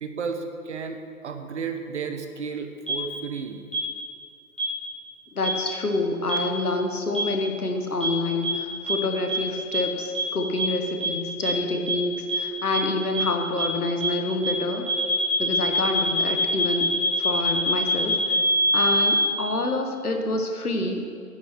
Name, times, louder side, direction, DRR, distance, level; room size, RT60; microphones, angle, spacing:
voice 1, 0.0-3.6, right 5 dB, 50° right, 6 dB, 1.0 m, -33 dB
sound 1, 2.9-3.0 3.7-3.8 4.6-4.7 5.4-5.5 6.3-6.4 7.1-7.2 8.0-8.1 8.4-8.5 8.9-9.0 9.3-9.4 9.7-9.8 10.1-10.2 10.6-10.7 11.0-11.1 11.4-11.5 11.9-12.0 12.3-12.4 12.7-12.8 13.1-13.2 13.6-13.7 14.0-14.1 14.4-14.5 14.9-19.3, equal, ahead, 2.6 m, -23 dB
voice 2, 5.3-14.9 15.4-16.9 17.2-18.1 18.7-21.2, left 2 dB, 80° left, 4 dB, 1.3 m, -27 dB
10.5 x 7.6 x 4.5 m, 2.4 s
figure-of-eight pair, 125°, 44 cm